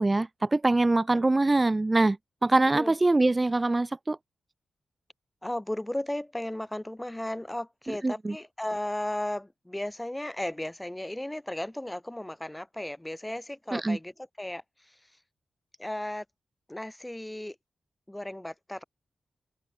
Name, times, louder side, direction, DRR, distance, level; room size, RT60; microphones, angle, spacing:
voice 1, 0.0-2.2 2.4-4.2 8.0-8.3 13.7-14.0, right 2 dB, 25° right, 0.3 m, -23 dB
voice 2, 5.4-15.0 15.8-16.2 16.7-17.6 18.1-18.8, left 1 dB, 10° left, 2.7 m, -35 dB
open air
cardioid pair, 90°, 0 cm